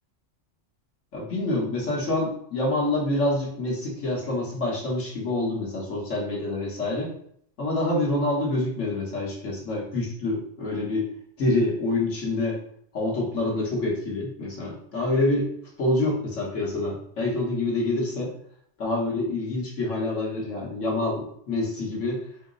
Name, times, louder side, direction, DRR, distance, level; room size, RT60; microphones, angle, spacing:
voice 1, 1.1-7.1 7.6-11.1 11.4-12.6 12.9-15.5 15.8-18.3 18.8-22.2, left 2 dB, 75° left, -3 dB, 1.5 m, -26 dB
5.1 x 2.0 x 3.7 m, 0.65 s
omnidirectional pair, 1.3 m